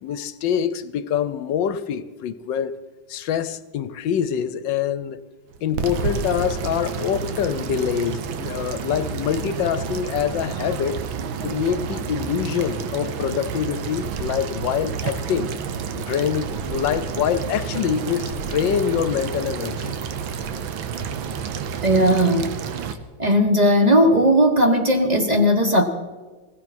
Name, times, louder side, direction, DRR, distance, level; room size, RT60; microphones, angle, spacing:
voice 1, 0.0-2.7 3.1-5.2 5.6-11.0 11.4-15.5 15.9-20.0, left 8 dB, 75° left, 1.3 m, -25 dB
sound 1, 5.5-22.9, right 6 dB, 85° right, 1.7 m, -30 dB
voice 2, 21.8-22.5 23.2-25.9, equal, 25° right, 1.0 m, -17 dB
20.0 x 16.5 x 4.2 m
omnidirectional pair, 2.1 m